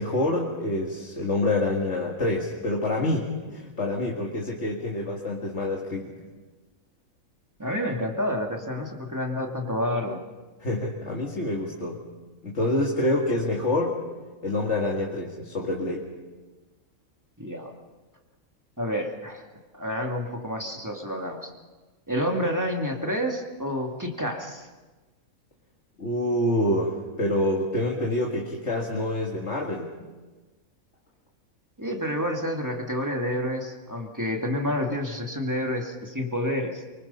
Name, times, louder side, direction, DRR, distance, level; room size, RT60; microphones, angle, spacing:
voice 1, 0.0-6.1 10.6-12.0 12.4-14.0 14.4-16.1 26.0-29.9, left 1 dB, 50° left, -2 dB, 2.4 m, -27 dB
voice 2, 7.6-10.2 17.4-17.7 18.8-19.4 19.7-21.5 22.1-24.7 31.8-36.8, equal, 10° right, 1 dB, 2.4 m, -29 dB
24.5 x 24.0 x 5.6 m, 1.2 s
omnidirectional pair, 1.5 m